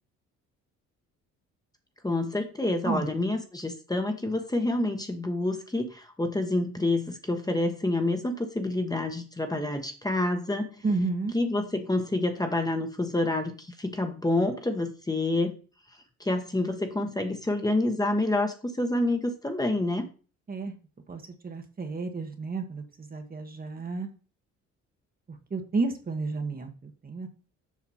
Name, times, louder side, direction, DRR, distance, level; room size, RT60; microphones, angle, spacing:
voice 1, 2.0-10.8 11.3-15.5 16.2-20.1, left 2 dB, 10° left, 5 dB, 1.2 m, -28 dB
voice 2, 10.8-11.3 20.5-20.7 21.1-24.1 25.5-27.3, right 3 dB, 30° right, 6 dB, 1.3 m, -31 dB
7.4 x 5.1 x 4.2 m, 0.36 s
cardioid pair, 90°, 30 cm